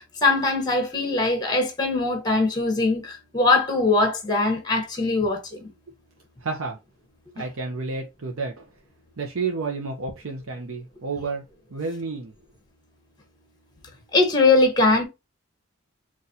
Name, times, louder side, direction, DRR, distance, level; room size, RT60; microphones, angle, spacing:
voice 1, 0.0-5.7 14.1-15.1, left 3 dB, 20° left, 0.9 m, -21 dB
voice 2, 6.4-6.8 7.4-8.7 9.2-11.4 11.7-12.3, right 4 dB, 85° right, 0.7 m, -30 dB
4.0 x 2.5 x 2.7 m
head